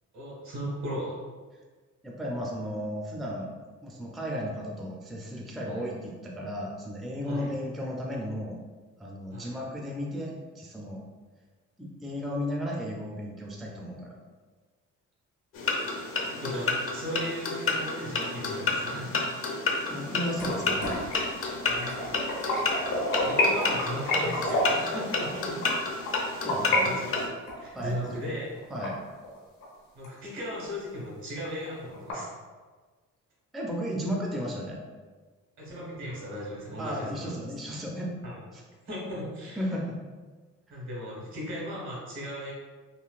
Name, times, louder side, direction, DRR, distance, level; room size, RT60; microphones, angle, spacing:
voice 1, 0.1-1.1 5.6-5.8 7.2-7.5 9.3-9.6 16.3-19.1 21.7-21.9 23.2-25.6 26.8-27.2 27.6-28.5 29.9-32.3 35.6-37.3 38.2-38.4 38.8-39.6 40.7-42.5, equal, 70° right, -5 dB, 1.5 m, -37 dB
voice 2, 2.0-3.5 3.8-8.6 9.0-11.0 11.8-14.2 19.9-21.0 26.4-27.0 27.7-28.2 28.7-29.0 33.5-34.8 36.8-38.2 38.5-38.6 39.6-40.0, equal, ahead, -2 dB, 0.4 m, -34 dB
sound 1, 15.5-27.3, left 3 dB, 45° left, 0.6 m, -31 dB
sound 2, 20.3-26.8 27.1-29.6 30.0-30.1 30.6-30.7 31.0-31.1 31.4-32.1, left 1 dB, 85° left, 1.2 m, -30 dB
3.8 x 2.3 x 2.4 m, 1.4 s
cardioid pair, 90°, 30 cm